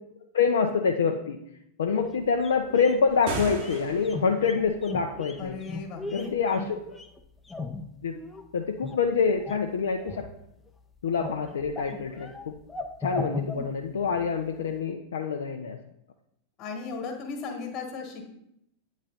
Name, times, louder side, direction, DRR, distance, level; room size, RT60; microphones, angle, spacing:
voice 1, 0.3-1.4 1.8-5.6 6.1-6.6 8.0-8.1 8.5-10.2 11.0-12.5 13.0-15.8, left 5 dB, 65° left, 3 dB, 0.4 m, -26 dB
sound 1, 1.9-8.4 8.8-9.7 10.0-10.7 11.0-14.3 14.6-14.7, left 3 dB, 10° left, 0.5 m, -38 dB
sound 2, 3.1-4.4, right 3 dB, 50° right, 0.9 m, -35 dB
voice 2, 5.4-6.3 16.6-18.4, left 4 dB, 35° left, 3 dB, 1.4 m, -36 dB
8.5 x 3.1 x 4.0 m, 0.78 s
figure-of-eight pair, 90°, 0 cm